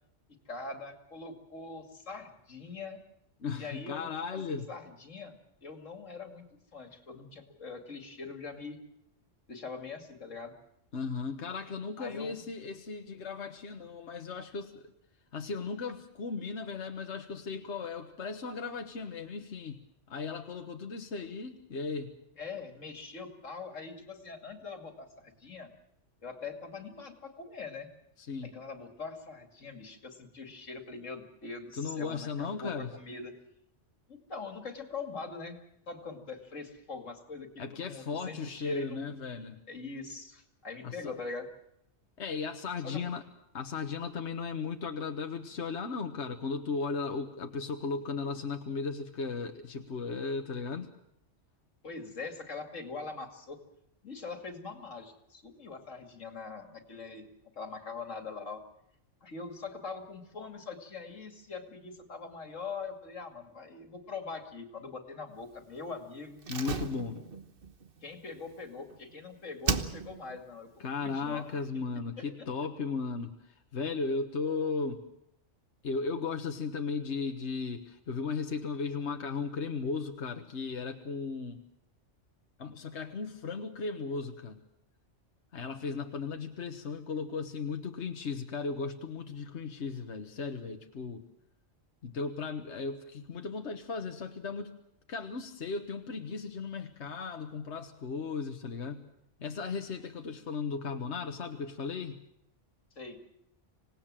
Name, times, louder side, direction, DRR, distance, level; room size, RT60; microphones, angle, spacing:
voice 1, 0.5-3.0 3.5-5.3 5.6-6.4 6.7-8.8 9.5-10.5 12.0-12.6 22.4-25.7 26.2-27.9 28.4-33.3 34.1-35.6 35.9-39.1 39.7-41.5 42.8-43.0 51.8-53.6 54.0-57.3 57.5-58.6 59.2-66.4 68.0-71.5 103.0-103.2, left 4 dB, 90° left, 5 dB, 2.8 m, -42 dB
voice 2, 3.4-4.7 10.9-14.9 15.3-19.8 20.1-22.1 28.2-28.5 31.8-32.9 37.6-39.6 40.8-41.1 42.2-43.2 43.5-50.9 66.5-67.2 70.8-75.0 75.8-81.6 82.6-84.6 85.5-91.2 92.0-94.7 95.1-99.0 99.4-102.2, left 4 dB, 65° left, 5 dB, 1.5 m, -36 dB
Slam, 66.4-69.2 69.6-70.4 70.7-70.8, right 5 dB, 50° right, 1.4 m, -35 dB
26.0 x 18.5 x 7.5 m, 0.81 s
omnidirectional pair, 1.3 m